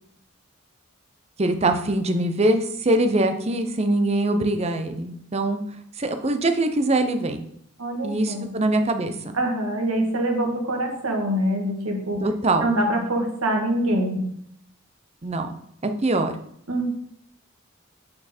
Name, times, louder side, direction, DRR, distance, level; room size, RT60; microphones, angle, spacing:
voice 1, 1.4-5.6 6.0-7.4 8.0-9.4 12.2-12.7 15.2-15.5 15.8-16.3, right 2 dB, 30° right, 7 dB, 0.6 m, -23 dB
voice 2, 7.8-8.5 9.3-12.2 12.6-14.3 16.7-16.9, right 1 dB, 85° right, 2 dB, 1.7 m, -24 dB
8.6 x 4.5 x 4.3 m, 0.69 s
head